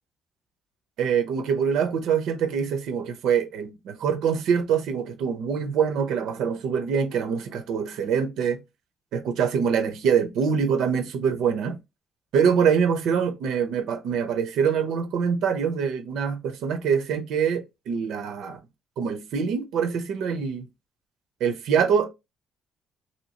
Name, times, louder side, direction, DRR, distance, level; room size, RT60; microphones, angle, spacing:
voice 1, 1.0-8.6 9.1-11.8 12.3-18.6 19.0-20.7 21.4-22.1, right 7 dB, 75° right, 0.7 m, -24 dB
3.1 x 2.9 x 2.8 m
cardioid pair, 170°, 0 cm